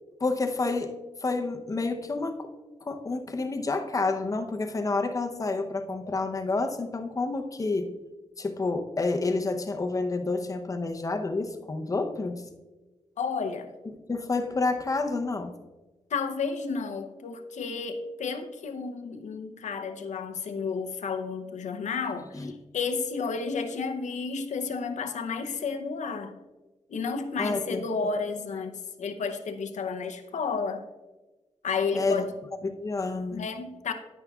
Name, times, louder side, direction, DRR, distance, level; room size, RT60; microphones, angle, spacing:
voice 1, 0.2-0.9 1.2-2.5 2.8-7.9 8.4-12.4 14.1-15.5 22.3-22.5 27.4-27.8 31.9-32.3 32.6-33.4, left 3 dB, 30° left, 5 dB, 0.7 m, -29 dB
voice 2, 13.2-13.7 16.1-26.4 26.9-30.8 31.6-32.3 33.3-33.9, left 5 dB, 90° left, 6 dB, 0.7 m, -32 dB
10.5 x 9.6 x 2.3 m, 1.2 s
wide cardioid pair, 155°, 12 cm